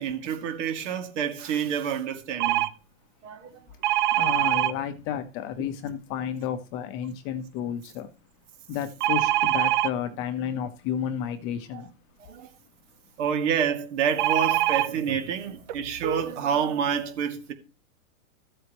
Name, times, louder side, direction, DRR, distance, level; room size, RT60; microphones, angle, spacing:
voice 1, 0.0-2.7 3.2-3.5 5.6-5.7 11.7-11.8 12.3-12.5 13.2-17.5, right 7 dB, 55° right, 2.5 m, -28 dB
sound 1, 2.4-2.7 3.8-4.7 9.0-9.9 14.2-14.9 15.7-15.8 16.0-16.2, right 13 dB, 35° right, 0.5 m, -23 dB
voice 2, 4.2-8.1 8.7-11.9, left 9 dB, 30° left, 1.1 m, -31 dB
14.0 x 8.0 x 3.1 m
hypercardioid pair, 150°, 42 cm